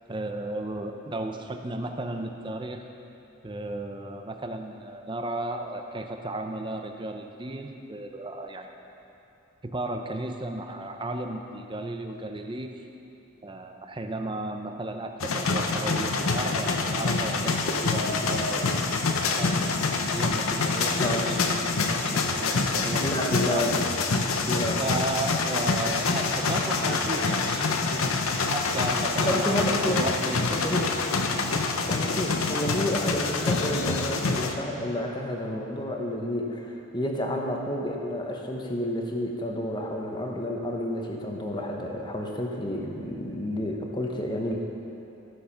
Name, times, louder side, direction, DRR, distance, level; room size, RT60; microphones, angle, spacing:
voice 1, 0.1-2.8 3.4-8.7 9.6-12.8 13.4-18.7 19.4-19.8 20.1-23.7 24.3-24.4 24.8-27.7 28.5-29.6 29.8-30.7, right 2 dB, 20° right, 5 dB, 0.6 m, -34 dB
sound 1, 15.2-34.5, left 3 dB, 80° left, 0.8 m, -26 dB
voice 2, 23.0-23.7 24.4-24.8 29.2-30.1 30.6-30.9 31.8-44.5, left 1 dB, 20° left, 1 dB, 1.0 m, -30 dB
14.5 x 6.4 x 5.7 m, 2.9 s
head